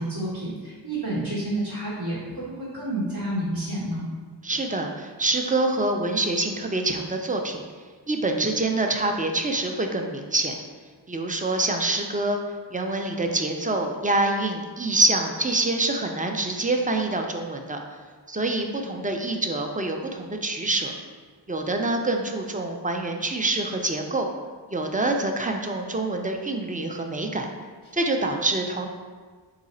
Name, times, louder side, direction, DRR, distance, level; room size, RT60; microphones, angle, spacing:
voice 1, 0.0-4.1, right 1 dB, 60° right, -10 dB, 1.2 m, -29 dB
voice 2, 4.4-7.6 8.1-10.6 11.1-12.4 12.7-17.8 18.3-20.9 21.5-24.3 24.7-27.5 27.9-28.9, right 2 dB, 20° right, 3 dB, 0.4 m, -26 dB
3.9 x 2.5 x 4.2 m, 1.6 s
wide cardioid pair, 40°, 46 cm